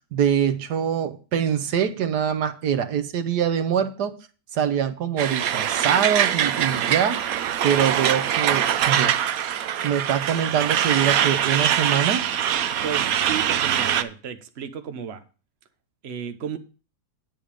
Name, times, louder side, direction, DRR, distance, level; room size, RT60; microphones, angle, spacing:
voice 1, 0.1-4.1 4.5-7.2 7.6-9.2 9.8-12.2, right 8 dB, 90° right, 1.5 m, -24 dB
Truck, 5.2-14.0, right 10 dB, 70° right, 1.1 m, -23 dB
voice 2, 12.8-15.2 16.0-16.6, right 8 dB, 45° right, 1.2 m, -33 dB
9.2 x 7.6 x 5.0 m
omnidirectional pair, 1.7 m